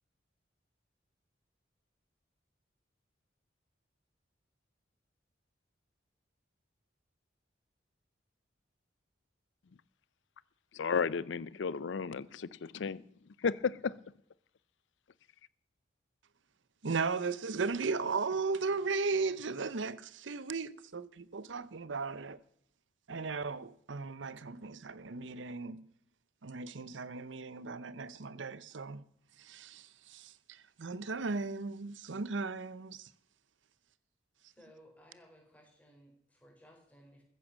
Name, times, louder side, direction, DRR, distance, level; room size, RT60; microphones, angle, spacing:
voice 1, 10.7-13.0 13.4-13.9, left 5 dB, 75° left, 0.5 m, -33 dB
voice 2, 16.8-22.4 23.1-25.9 26.4-29.0 29.4-33.1, right 4 dB, 80° right, 0.7 m, -36 dB
voice 3, 34.5-37.2, equal, 10° left, 4.9 m, -59 dB
15.0 x 10.0 x 7.4 m
head